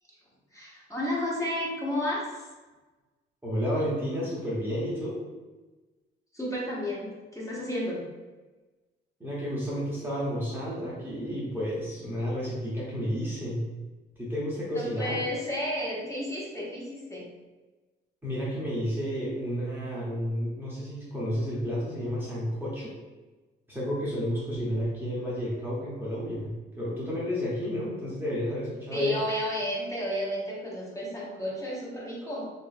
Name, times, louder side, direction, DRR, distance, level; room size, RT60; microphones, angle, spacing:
voice 1, 0.5-2.5 6.3-8.0 14.7-17.2 28.9-32.5, left 1 dB, 15° left, -5 dB, 0.9 m, -32 dB
voice 2, 3.4-5.2 9.2-13.6 14.2-15.2 18.2-22.9 23.7-29.2, equal, 10° right, -7 dB, 0.7 m, -31 dB
2.9 x 2.5 x 2.4 m, 1.2 s
cardioid pair, 90°, 20 cm